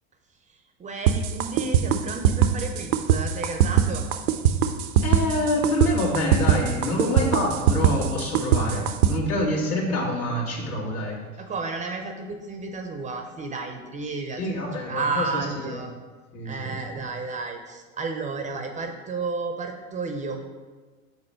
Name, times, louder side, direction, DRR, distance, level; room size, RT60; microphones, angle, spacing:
voice 1, 0.8-4.1 11.4-15.9 16.4-20.4, right 4 dB, 20° right, 5 dB, 0.5 m, -32 dB
sound 1, 1.1-9.1, right 9 dB, 85° right, 0.6 m, -21 dB
voice 2, 5.0-11.2 14.4-15.9 16.3-17.0, left 1 dB, 90° left, -4 dB, 2.1 m, -26 dB
5.5 x 4.0 x 5.6 m, 1.3 s
hypercardioid pair, 110°, 42 cm